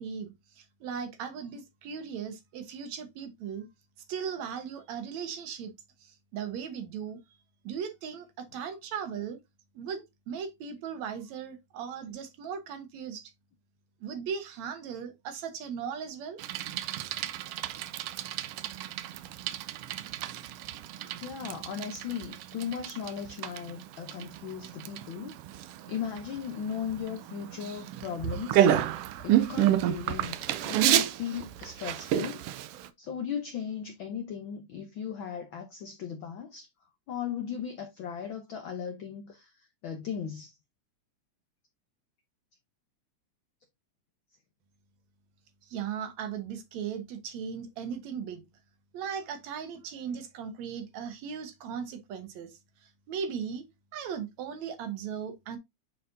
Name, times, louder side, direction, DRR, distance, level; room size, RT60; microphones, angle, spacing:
voice 1, 0.0-3.7 4.1-5.7 6.0-7.2 7.6-9.4 9.8-13.3 14.0-16.4 45.6-48.4 48.9-53.7 53.9-55.6, right 7 dB, 70° right, 2.4 m, -37 dB
Bicycle, 16.4-32.9, right 11 dB, 90° right, 1.3 m, -30 dB
voice 2, 21.2-28.7 29.2-32.5 33.0-36.7 37.1-40.5, left 8 dB, 75° left, 1.1 m, -37 dB
9.0 x 4.3 x 2.6 m
omnidirectional pair, 3.4 m